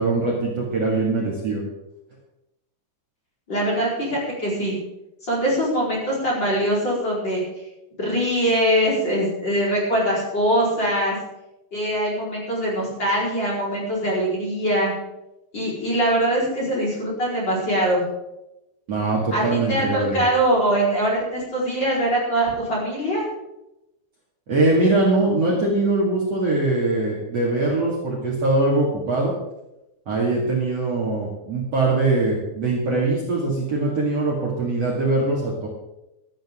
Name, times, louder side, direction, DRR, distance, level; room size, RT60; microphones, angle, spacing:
voice 1, 0.0-1.6 18.9-20.2 24.5-29.3 30.1-35.7, right 2 dB, 40° right, -4 dB, 2.9 m, -22 dB
voice 2, 3.5-4.8 5.2-7.4 8.0-11.2 11.7-14.9 15.5-18.0 19.3-23.2, right 1 dB, 25° left, -5 dB, 5.0 m, -22 dB
16.5 x 13.5 x 3.8 m, 0.91 s
omnidirectional pair, 5.0 m